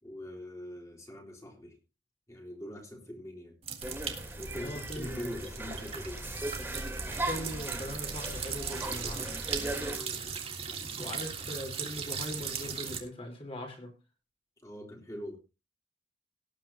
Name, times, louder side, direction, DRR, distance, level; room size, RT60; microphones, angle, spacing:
voice 1, 0.0-1.8 2.3-3.6 4.3-6.2 9.8-10.2 14.6-15.4, left 1 dB, 20° left, 1 dB, 3.5 m, -43 dB
sound 1, 3.6-13.0, right 6 dB, 35° right, 1.9 m, -39 dB
sound 2, 3.8-10.0, right 1 dB, 10° right, 2.8 m, -38 dB
voice 2, 4.6-5.2 7.2-9.4 10.9-13.9, equal, 35° left, 2 dB, 4.2 m, -40 dB
18.0 x 9.1 x 2.9 m, 0.28 s
head